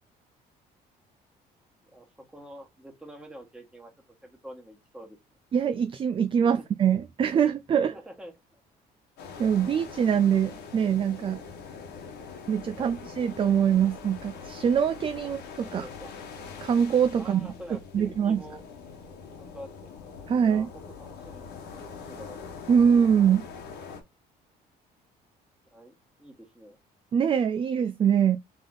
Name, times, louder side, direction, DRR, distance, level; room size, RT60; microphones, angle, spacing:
voice 1, 1.8-3.9 4.2-5.2 6.4-6.7 7.9-8.6 12.7-13.0 15.2-15.3 15.6-16.1 17.2-18.6 19.4-19.9 20.4-21.5 21.8-22.4 25.7-25.9 26.2-26.8, equal, 5° right, 1.6 m, -46 dB
voice 2, 5.5-7.9 9.4-11.4 12.5-15.4 15.7-15.9 16.6-17.5 17.9-18.4 20.3-20.7 22.7-23.5 27.1-28.4, right 8 dB, 30° right, 0.4 m, -23 dB
sound 1, 9.2-24.0, left 5 dB, 75° left, 1.3 m, -43 dB
3.7 x 3.4 x 3.8 m
cardioid pair, 110°, 17 cm